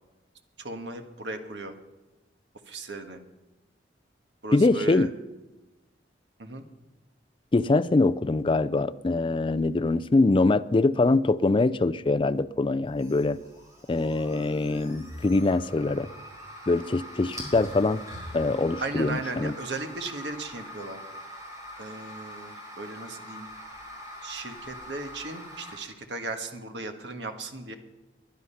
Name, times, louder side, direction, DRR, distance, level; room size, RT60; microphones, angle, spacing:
voice 1, 0.6-1.7 2.7-3.2 4.4-5.1 6.4-6.6 18.8-21.0 21.8-23.5 24.2-27.7, right 3 dB, 70° right, 6 dB, 1.5 m, -36 dB
voice 2, 4.5-5.1 7.5-13.4 13.9-16.1 16.7-18.0 18.3-19.5, left 2 dB, 30° left, 12 dB, 0.4 m, -23 dB
sound 1, 12.9-25.8, equal, 20° right, 4.9 m, -43 dB
21.0 x 11.0 x 5.7 m, 1.1 s
head